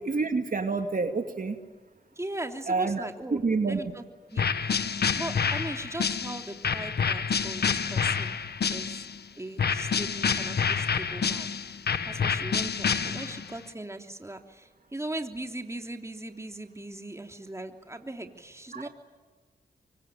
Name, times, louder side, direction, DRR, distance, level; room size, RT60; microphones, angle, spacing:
voice 1, 0.0-1.6 2.7-3.8 18.7-18.9, right 4 dB, 50° right, 6 dB, 2.4 m, -28 dB
voice 2, 2.2-3.4 3.7-4.0 4.3-4.7 5.1-8.3 8.7-9.1 9.4-11.5 12.0-18.9, right 1 dB, 15° right, 4 dB, 3.1 m, -39 dB
sound 1, 4.4-9.2 9.6-13.6, left 6 dB, 70° left, 1.6 m, -28 dB
25.5 x 24.0 x 9.2 m, 1.3 s
cardioid pair, 45°, 17 cm